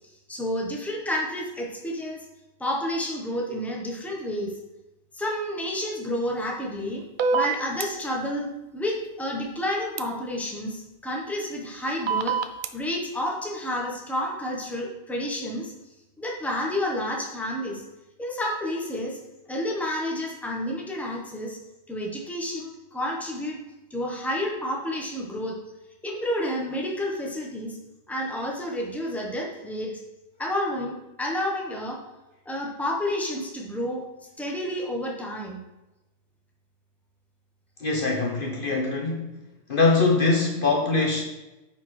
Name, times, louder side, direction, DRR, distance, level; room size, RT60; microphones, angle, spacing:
voice 1, 0.3-2.2 2.6-4.6 5.1-7.0 7.3-12.4 12.7-15.7 16.2-17.8 18.2-19.2 19.5-21.6 21.9-23.6 23.9-25.6 26.0-27.8 28.1-30.0 30.4-32.0 32.4-34.0 34.4-35.6, left 1 dB, ahead, -2 dB, 1.2 m, -30 dB
sound 1, 7.2-7.8 10.0-10.1 12.1-12.7, right 5 dB, 60° right, 0.5 m, -24 dB
voice 2, 37.8-39.4 39.7-41.2, left 3 dB, 50° left, -1 dB, 1.1 m, -23 dB
9.5 x 4.5 x 4.4 m, 1.0 s
omnidirectional pair, 1.2 m